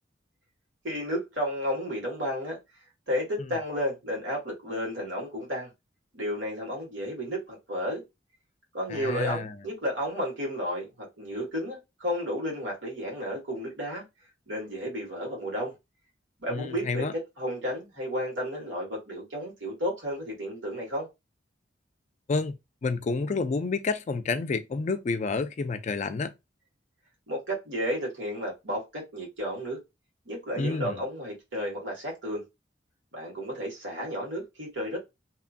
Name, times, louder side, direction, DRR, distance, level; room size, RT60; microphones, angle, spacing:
voice 1, 0.8-2.6 3.1-5.7 6.1-8.0 8.7-14.0 14.5-15.7 16.4-21.1 27.3-29.8 30.2-32.4 33.1-35.0, equal, 85° right, 1.7 m, -32 dB
voice 2, 8.9-9.5 16.5-17.1 22.3-22.6 22.8-26.3 30.6-31.0, left 4 dB, 40° left, 0.3 m, -29 dB
2.9 x 2.5 x 2.4 m
head